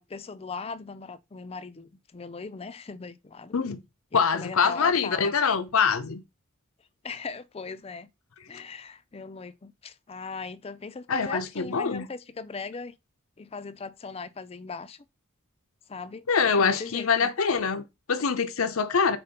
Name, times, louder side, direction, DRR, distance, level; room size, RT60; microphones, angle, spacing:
voice 1, 0.0-3.5 4.1-5.4 7.0-8.1 8.5-12.9 13.4-15.0 15.9-17.3, left 4 dB, 30° left, 0.4 m, -39 dB
voice 2, 4.1-6.2 11.1-12.1 16.3-19.2, left 5 dB, 85° left, 0.7 m, -24 dB
4.3 x 4.3 x 5.1 m
head